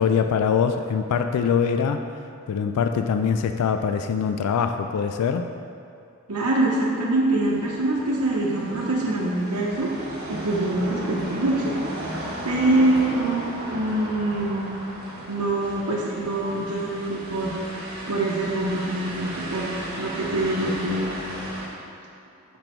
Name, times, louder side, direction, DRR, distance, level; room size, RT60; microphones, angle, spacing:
voice 1, 0.0-2.1 2.5-5.5, left 6 dB, 90° left, 7 dB, 0.3 m, -23 dB
voice 2, 6.3-9.9 10.3-11.8 12.4-14.7 15.3-17.5 18.1-21.1, right 2 dB, 90° right, -5 dB, 0.9 m, -24 dB
sound 1, 7.4-21.7, right 1 dB, 45° right, 1.7 m, -35 dB
6.0 x 5.2 x 4.5 m, 2.5 s
head